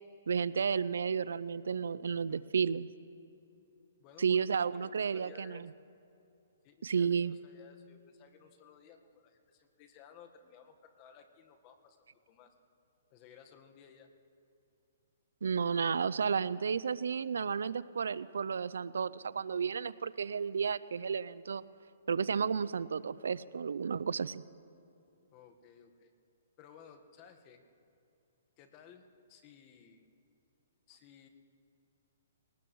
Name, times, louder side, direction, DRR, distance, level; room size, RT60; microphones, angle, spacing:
voice 1, 0.3-2.9 4.2-5.7 6.8-7.3 15.4-21.6 22.1-24.4, right 6 dB, 80° right, 18 dB, 0.4 m, -32 dB
voice 2, 4.0-5.6 6.6-12.5 13.1-14.1 25.3-26.1 26.6-27.6 28.6-30.1 30.9-31.3, left 7 dB, 35° left, 5 dB, 1.4 m, -58 dB
22.0 x 19.0 x 3.1 m, 2.7 s
hypercardioid pair, 145°, 0 cm